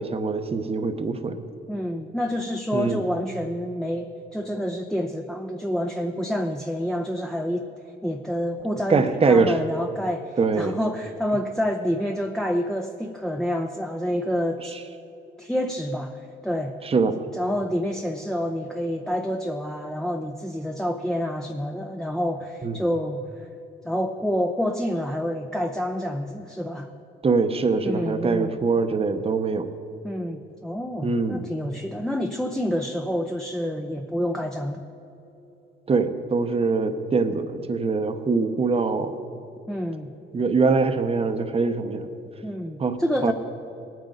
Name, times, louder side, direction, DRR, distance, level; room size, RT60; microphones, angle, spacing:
voice 1, 0.0-1.4 2.7-3.0 8.9-9.6 10.4-10.8 14.6-14.8 16.8-17.2 22.6-22.8 27.2-29.7 31.0-31.4 35.9-39.2 40.3-42.1 42.8-43.0 43.2-43.3, right 4 dB, 30° right, 8 dB, 0.9 m, -23 dB
voice 2, 1.7-7.6 8.0-14.8 15.4-16.8 17.4-23.5 23.8-26.9 27.8-28.5 30.0-34.8 39.7-40.1 42.4-43.3, equal, 5° left, 3 dB, 0.6 m, -28 dB
19.0 x 9.1 x 3.9 m, 3.0 s
cardioid pair, 90°, 20 cm